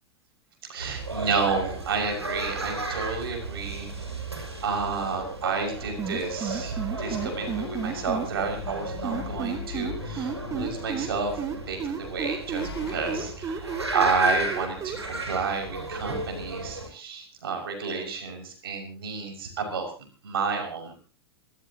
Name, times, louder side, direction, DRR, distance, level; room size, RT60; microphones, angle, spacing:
voice 1, 0.7-3.9 4.6-19.9 20.2-20.9, right 5 dB, 60° right, 4 dB, 6.2 m, -30 dB
sound 1, 0.8-16.9, right 2 dB, 85° right, 6.8 m, -34 dB
sound 2, 6.0-8.3 9.0-11.1 11.4-15.0, right 7 dB, 25° right, 1.8 m, -31 dB
sound 3, 7.0-12.2 12.6-13.3, left 5 dB, 75° left, 3.6 m, -41 dB
27.5 x 14.0 x 3.0 m, 0.36 s
figure-of-eight pair, 95°, 14 cm